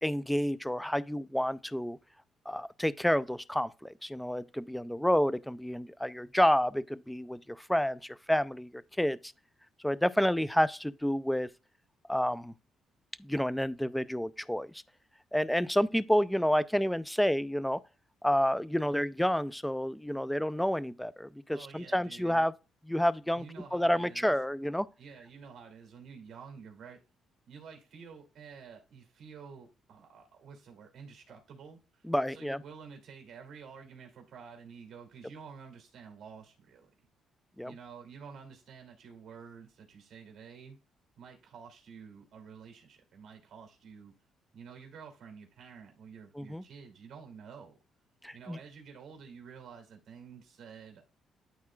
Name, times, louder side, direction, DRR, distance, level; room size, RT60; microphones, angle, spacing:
voice 1, 0.0-2.0 2.5-9.3 9.8-11.5 12.1-12.5 13.2-14.8 15.3-17.8 18.2-22.5 22.9-23.4 23.7-24.9 32.0-32.6 37.6-37.7 46.4-46.6 48.2-48.6, equal, 5° left, 0.4 m, -29 dB
voice 2, 21.5-22.4 23.4-24.4 25.0-27.0 27.5-36.9 37.6-40.8 41.2-44.1 44.5-47.8 48.3-51.1, right 6 dB, 65° right, 2.6 m, -50 dB
12.5 x 4.3 x 2.3 m
cardioid pair, 90°, 0 cm